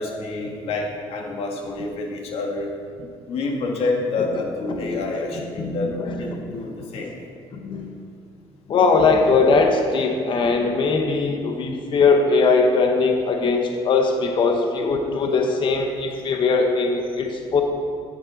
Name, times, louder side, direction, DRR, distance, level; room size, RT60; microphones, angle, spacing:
voice 1, 0.0-2.7 3.3-5.9 6.2-7.2, left 3 dB, 65° left, 0 dB, 1.9 m, -28 dB
voice 2, 4.7-5.0 5.6-6.6 7.6-7.8 8.7-17.6, left 4 dB, 50° left, 3 dB, 1.0 m, -20 dB
9.8 x 9.4 x 4.0 m, 2.3 s
cardioid pair, 115°, 11 cm